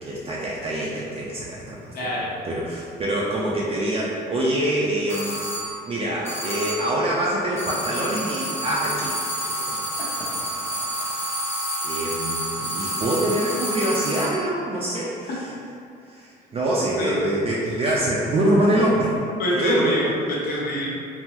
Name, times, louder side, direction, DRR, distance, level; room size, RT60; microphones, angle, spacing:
voice 1, 0.0-9.1 9.5-9.9 10.2-10.3 11.8-15.3 16.1-19.2 19.5-19.9, right 1 dB, 35° right, -5 dB, 0.4 m, -25 dB
voice 2, 1.9-2.3 16.9-17.3 19.4-20.9, left 1 dB, 60° left, -5 dB, 0.9 m, -25 dB
sound 1, 5.1-5.8 6.2-7.0 7.6-14.4, right 1 dB, 15° left, 0.6 m, -29 dB
3.5 x 2.0 x 2.9 m, 2.4 s
cardioid pair, 110°, 17 cm